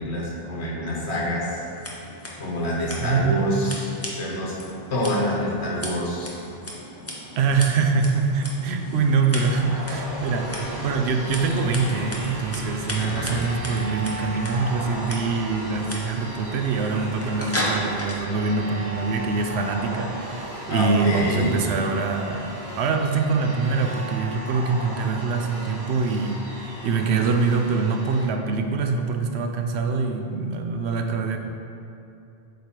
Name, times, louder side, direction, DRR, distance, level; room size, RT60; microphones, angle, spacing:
voice 1, 0.0-1.7 2.4-3.9 4.1-4.6 4.9-6.3 12.9-13.4 20.7-21.6, equal, 85° left, -4 dB, 1.5 m, -26 dB
Scissors, 1.7-18.2, equal, 15° left, 0.7 m, -36 dB
voice 2, 3.0-3.4 7.4-31.4, right 4 dB, 80° right, 4 dB, 0.8 m, -24 dB
sound 1, 8.8-28.3, right 1 dB, 45° right, 1.3 m, -36 dB
7.9 x 3.2 x 4.5 m, 2.7 s
omnidirectional pair, 1.1 m